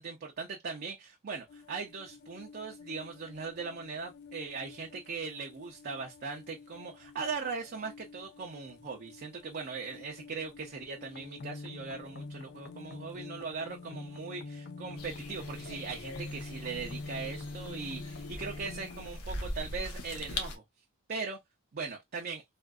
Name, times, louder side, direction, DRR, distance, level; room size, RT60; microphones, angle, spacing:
voice 1, 0.0-20.6 21.1-21.4 21.7-22.4, right 4 dB, 45° right, 0.6 m, -39 dB
sound 1, 1.5-19.1, left 3 dB, 50° left, 0.5 m, -47 dB
sound 2, 15.0-20.6, left 1 dB, 80° left, 0.9 m, -41 dB
3.5 x 2.4 x 2.3 m
head